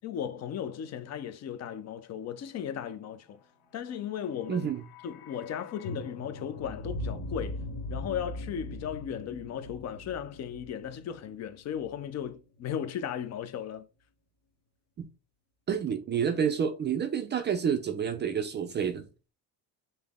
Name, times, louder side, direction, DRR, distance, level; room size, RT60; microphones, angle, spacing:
voice 1, 0.0-3.4 3.7-4.7 5.0-7.6 7.9-13.8, left 9 dB, 45° left, 0.5 m, -36 dB
sound 1, 4.1-12.3 12.5-12.6, left 1 dB, 75° left, 0.9 m, -41 dB
voice 2, 4.5-4.8 15.0-15.1 15.7-19.1, right 7 dB, 30° right, 0.4 m, -29 dB
5.4 x 2.0 x 3.5 m
cardioid pair, 130°, 39 cm